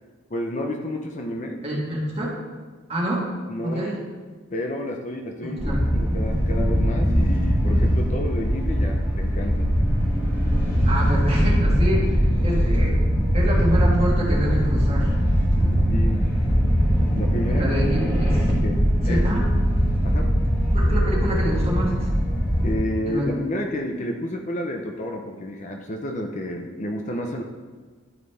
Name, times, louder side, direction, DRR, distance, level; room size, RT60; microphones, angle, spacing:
voice 1, 0.3-1.6 3.5-3.9 4.5-9.7 15.9-16.2 17.1-17.7 18.5-19.2 20.0-20.3 22.6-27.4, left 1 dB, 35° left, 2 dB, 0.5 m, -30 dB
voice 2, 1.6-2.4 2.9-3.3 3.6-4.0 5.4-5.8 10.8-13.0 13.3-15.1 15.5-15.8 17.5-18.4 19.0-19.4 20.9-22.1 22.6-22.7 23.0-23.3, equal, 30° right, -4 dB, 1.5 m, -27 dB
sound 1, 5.6-22.7, equal, 15° left, 1.6 m, -21 dB
11.0 x 4.0 x 3.3 m, 1.4 s
head